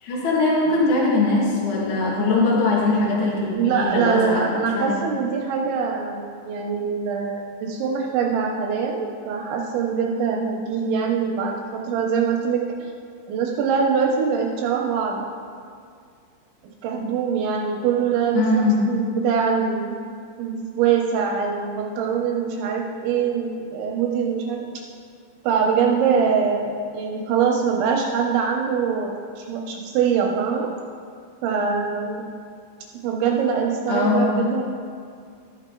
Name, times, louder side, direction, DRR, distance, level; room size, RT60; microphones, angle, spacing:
voice 1, 0.0-4.9 18.3-19.0 33.9-34.4, left 2 dB, 55° left, -5 dB, 2.3 m, -21 dB
voice 2, 3.6-12.9 13.3-15.3 16.8-20.0 20.4-24.8 25.4-30.7 31.4-32.2 33.0-34.6, right 6 dB, 80° right, 0 dB, 2.9 m, -23 dB
13.5 x 6.5 x 3.8 m, 2.3 s
omnidirectional pair, 5.7 m